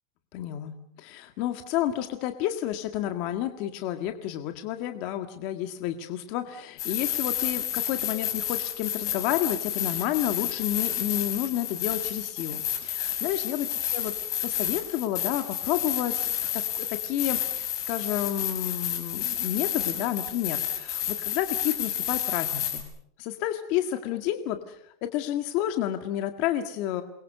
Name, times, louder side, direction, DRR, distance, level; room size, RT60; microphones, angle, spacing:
voice 1, 0.3-13.7 13.9-22.9 23.2-27.0, left 12 dB, 45° left, 7 dB, 1.8 m, -30 dB
sound 1, 6.8-22.8, left 10 dB, 65° left, 6.6 m, -30 dB
28.0 x 22.5 x 6.8 m, 0.71 s
supercardioid pair, 155°, 2 cm